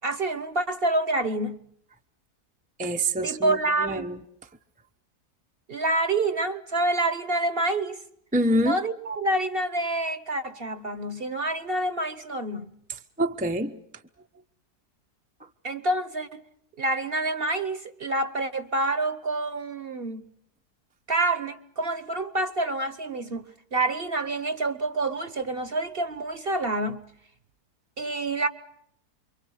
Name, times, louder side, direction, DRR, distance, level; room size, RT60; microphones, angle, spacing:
voice 1, 0.0-1.6 3.2-4.1 5.7-8.0 8.6-12.8 15.6-16.4 16.8-20.3 21.1-27.1 28.0-28.5, right 2 dB, 40° right, 1.2 m, -27 dB
voice 2, 2.8-4.2 8.3-8.8 13.2-13.7, right 1 dB, 5° right, 0.8 m, -25 dB
28.5 x 23.5 x 6.5 m
omnidirectional pair, 1.7 m